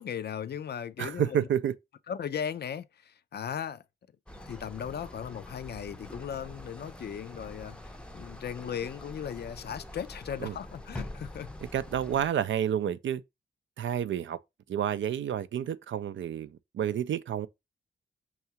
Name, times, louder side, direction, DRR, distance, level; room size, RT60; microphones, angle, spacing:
voice 1, 0.0-1.5 2.1-3.8 4.5-11.5, left 8 dB, 50° left, 0.4 m, -37 dB
voice 2, 1.0-1.7 10.4-10.5 11.7-13.2 13.8-14.4 14.7-17.5, right 9 dB, 65° right, 0.4 m, -30 dB
sound 1, 4.3-12.3, left 1 dB, 5° left, 0.6 m, -45 dB
5.5 x 2.4 x 2.8 m
cardioid pair, 55°, 21 cm